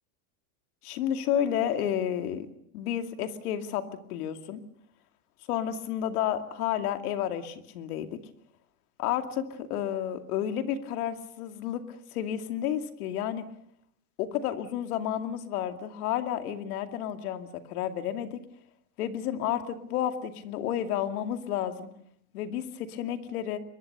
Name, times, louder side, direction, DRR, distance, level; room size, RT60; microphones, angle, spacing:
voice 1, 0.8-2.5 2.7-4.6 5.5-8.2 9.0-13.4 14.2-18.4 19.0-21.9 22.3-23.6, left 10 dB, 70° left, 8 dB, 2.5 m, -31 dB
24.0 x 22.0 x 6.8 m, 0.71 s
supercardioid pair, 170°, 47 cm